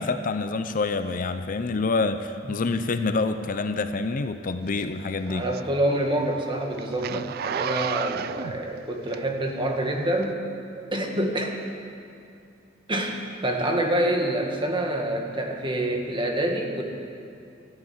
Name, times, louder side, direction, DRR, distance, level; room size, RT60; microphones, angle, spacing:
voice 1, 0.0-5.4, left 3 dB, 45° left, 10 dB, 0.6 m, -27 dB
Zipper (clothing), 4.7-9.6 10.2-10.3, right 9 dB, 50° right, 0.3 m, -33 dB
voice 2, 5.3-10.4 10.8-11.6 12.9-16.8, right 1 dB, 25° right, 2 dB, 1.7 m, -27 dB
14.0 x 9.8 x 9.5 m, 2.6 s
head